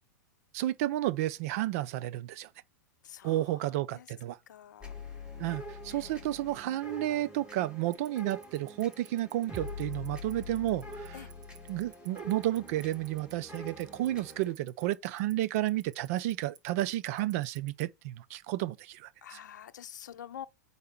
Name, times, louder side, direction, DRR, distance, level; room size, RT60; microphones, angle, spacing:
voice 1, 0.5-2.5 3.2-4.4 5.4-11.2 11.7-19.4, right 15 dB, 55° right, 0.5 m, -32 dB
voice 2, 3.0-3.5 3.9-4.1 4.5-5.0 5.3-5.4 5.9-6.2 11.1-11.3 19.2-20.5, left 10 dB, 80° left, 0.6 m, -47 dB
sound 1, 4.8-14.5, left 2 dB, 10° right, 2.3 m, -45 dB
Tick-tock, 7.9-17.8, right 8 dB, 75° right, 0.9 m, -51 dB
4.8 x 4.0 x 5.8 m
hypercardioid pair, 120°, 10 cm